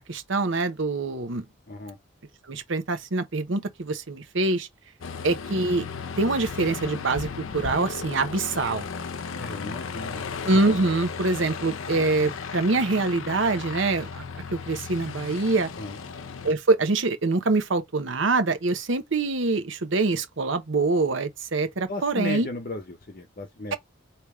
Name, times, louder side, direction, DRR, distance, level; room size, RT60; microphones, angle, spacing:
voice 1, 0.0-1.4 2.5-4.7 5.2-5.8 6.2-7.3 7.5-8.8 10.4-14.2 14.5-15.7 16.4-22.5, right 3 dB, 70° right, 0.8 m, -25 dB
voice 2, 1.7-2.0 9.3-10.3 15.8-16.0 21.9-23.8, left 2 dB, 45° left, 0.7 m, -35 dB
Aircraft, 5.0-16.5, left 5 dB, 85° left, 0.6 m, -35 dB
3.4 x 2.8 x 4.7 m
head